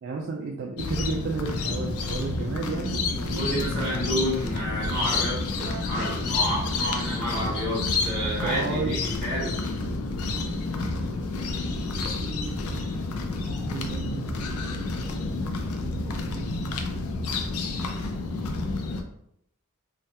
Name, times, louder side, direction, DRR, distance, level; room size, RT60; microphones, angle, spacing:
voice 1, 0.0-3.8 8.4-8.9 12.2-12.9 13.3-14.8 16.2-17.2, right 4 dB, 50° right, 0 dB, 0.3 m, -33 dB
sound 1, 0.8-19.0, left 3 dB, 75° left, 0.4 m, -29 dB
voice 2, 3.3-9.7 13.4-13.6, equal, ahead, -9 dB, 1.3 m, -30 dB
3.2 x 2.3 x 2.7 m, 0.76 s
head